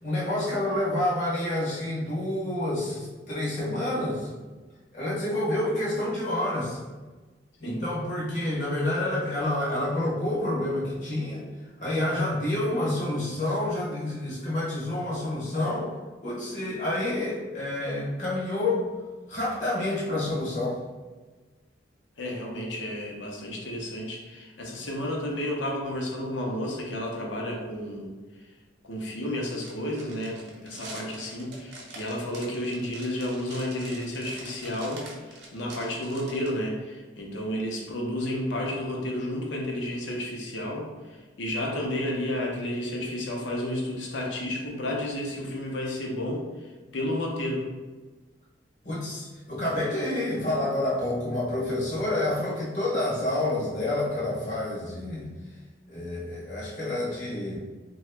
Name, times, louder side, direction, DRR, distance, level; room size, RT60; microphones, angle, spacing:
voice 1, 0.0-4.3 4.9-6.8 7.6-11.4 11.8-15.9 16.2-18.9 19.3-20.8 48.8-55.3 55.9-57.6, left 1 dB, 40° left, -7 dB, 0.7 m, -28 dB
voice 2, 22.2-28.1 28.8-47.7, left 1 dB, 80° left, -1 dB, 0.6 m, -32 dB
sound 1, 29.6-36.5, right 2 dB, 60° right, 0.6 m, -45 dB
2.8 x 2.2 x 3.3 m, 1.3 s
head